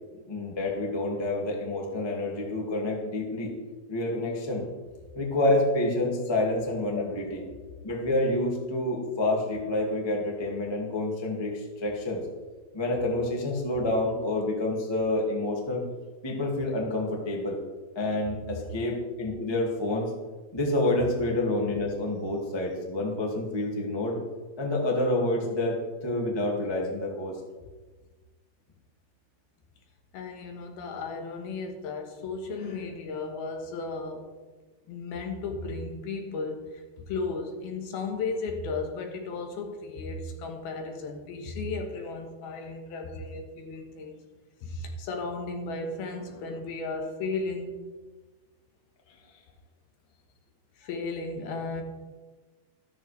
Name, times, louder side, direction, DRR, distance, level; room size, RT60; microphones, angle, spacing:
voice 1, 0.3-3.5 3.9-4.7 5.1-7.4 7.8-12.2 12.7-15.8 16.2-17.6 17.9-20.1 20.5-24.2 24.6-25.8 26.0-27.4, left 1 dB, 25° left, -2 dB, 0.6 m, -28 dB
voice 2, 30.1-34.3 34.9-44.1 44.6-47.7 50.8-51.8, left 3 dB, 70° left, 3 dB, 3.1 m, -35 dB
13.5 x 13.0 x 3.4 m, 1.3 s
omnidirectional pair, 4.9 m